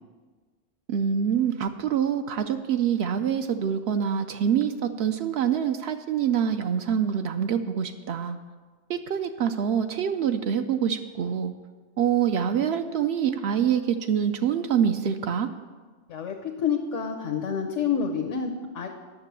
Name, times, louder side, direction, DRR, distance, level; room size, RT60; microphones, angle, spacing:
voice 1, 0.9-8.4 8.9-11.5 12.0-15.5, right 8 dB, 70° right, 7 dB, 0.8 m, -25 dB
voice 2, 16.1-18.9, left 7 dB, 90° left, 1 dB, 1.2 m, -28 dB
9.8 x 6.7 x 6.8 m, 1.4 s
omnidirectional pair, 1.2 m